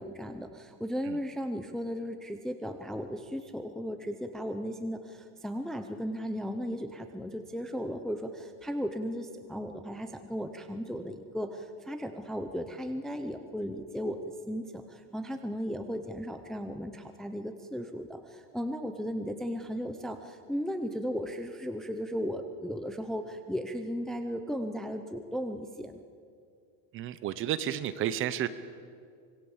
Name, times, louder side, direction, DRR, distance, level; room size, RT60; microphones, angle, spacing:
voice 1, 0.0-14.2 14.5-26.0, equal, ahead, 6 dB, 0.6 m, -36 dB
voice 2, 26.9-28.5, right 11 dB, 30° right, 14 dB, 0.8 m, -31 dB
25.5 x 22.5 x 7.2 m, 2.3 s
supercardioid pair, 165°, 44 cm